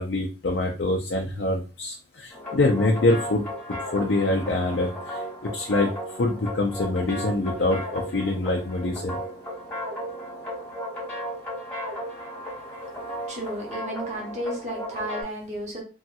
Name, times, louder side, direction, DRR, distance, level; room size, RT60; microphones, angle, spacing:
voice 1, 0.0-3.4 3.9-5.9 6.1-9.2, left 2 dB, 55° left, 0 dB, 0.5 m, -25 dB
sound 1, 2.3-15.2, equal, 10° left, 1.5 m, -35 dB
voice 2, 13.3-15.8, equal, 35° right, -2 dB, 1.0 m, -33 dB
3.1 x 2.8 x 2.3 m, 0.32 s
head